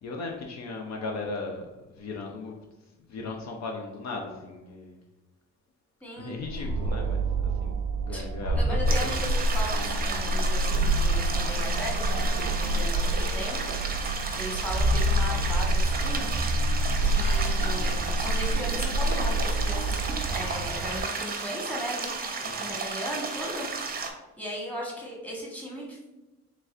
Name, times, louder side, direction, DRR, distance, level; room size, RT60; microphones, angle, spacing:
voice 1, 0.0-1.7 2.0-2.6 3.1-5.0 6.2-7.3 7.6-7.8 8.0-8.6 9.0-9.1 22.4-22.7, left 3 dB, 60° left, 1 dB, 0.6 m, -37 dB
voice 2, 6.0-6.3 8.1-8.2 8.5-16.7 17.0-24.1 24.4-26.0, equal, 5° left, -3 dB, 1.3 m, -37 dB
sound 1, 6.4-21.0, right 1 dB, 80° right, 0.5 m, -27 dB
sound 2, 8.9-24.1, right 4 dB, 30° right, 0.6 m, -33 dB
4.0 x 3.3 x 2.4 m, 1.1 s
cardioid pair, 90°, 30 cm